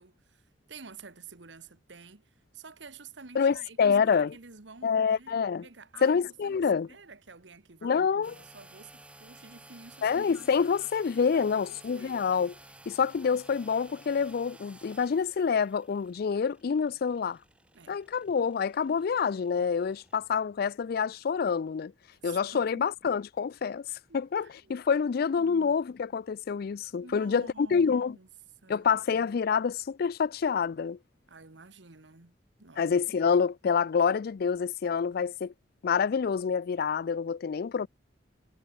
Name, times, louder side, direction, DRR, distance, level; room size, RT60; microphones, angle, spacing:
voice 1, 0.0-5.4 5.6-10.5 11.2-11.6 11.9-12.2 17.7-18.0 22.2-22.9 24.1-24.8 25.4-25.8 27.0-28.3 28.6-28.9 31.3-32.3 32.6-32.9, right 4 dB, 75° right, 1.6 m, -50 dB
voice 2, 3.4-4.3 4.8-5.7 6.0-6.9 7.8-8.3 10.0-12.5 12.9-17.4 17.9-21.9 22.2-23.9 24.1-28.2 28.7-31.0 32.8-35.5 35.8-37.9, left 6 dB, 55° left, 0.4 m, -27 dB
sound 1, 8.2-20.2, right 2 dB, 5° right, 0.9 m, -54 dB
head